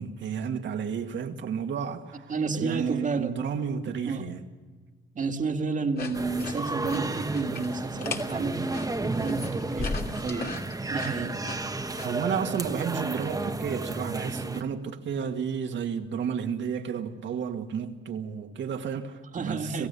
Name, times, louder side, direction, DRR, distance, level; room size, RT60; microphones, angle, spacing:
voice 1, 0.0-4.5 12.0-19.9, right 7 dB, 65° right, 2.0 m, -32 dB
voice 2, 2.3-3.4 4.0-4.3 5.2-10.6 10.9-11.4 19.3-19.9, right 4 dB, 40° right, 2.1 m, -31 dB
sound 1, 6.0-12.1, left 4 dB, 50° left, 2.9 m, -39 dB
sound 2, 6.1-14.6, right 2 dB, 15° right, 1.3 m, -32 dB
27.0 x 16.0 x 7.0 m
cardioid pair, 90°, 20 cm